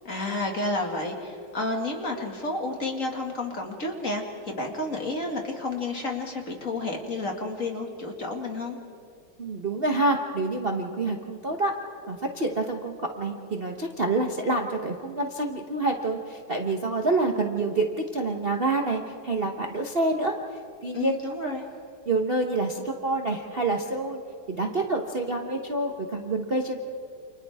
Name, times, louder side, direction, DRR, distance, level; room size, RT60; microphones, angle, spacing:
voice 1, 0.0-8.8 20.9-21.7, left 2 dB, 40° left, 1 dB, 2.5 m, -31 dB
voice 2, 9.4-11.7 12.1-17.9 18.1-20.3 20.8-21.2 22.1-24.2 24.5-26.8, right 2 dB, 35° right, 1 dB, 1.1 m, -27 dB
29.5 x 28.5 x 3.6 m, 2.5 s
omnidirectional pair, 2.3 m